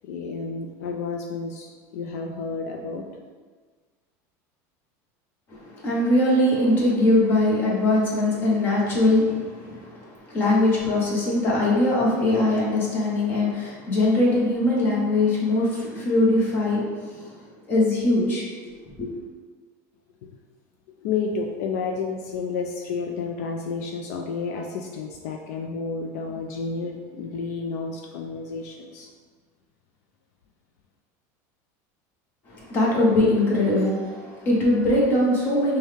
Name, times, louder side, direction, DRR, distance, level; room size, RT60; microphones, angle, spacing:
voice 1, 0.0-3.1 20.2-20.4 21.0-29.1, left 4 dB, 75° left, 2 dB, 0.4 m, -31 dB
voice 2, 5.5-19.1 32.5-35.8, left 1 dB, 25° left, -5 dB, 0.9 m, -22 dB
5.4 x 2.2 x 3.2 m, 1.5 s
cardioid pair, 175°, 9 cm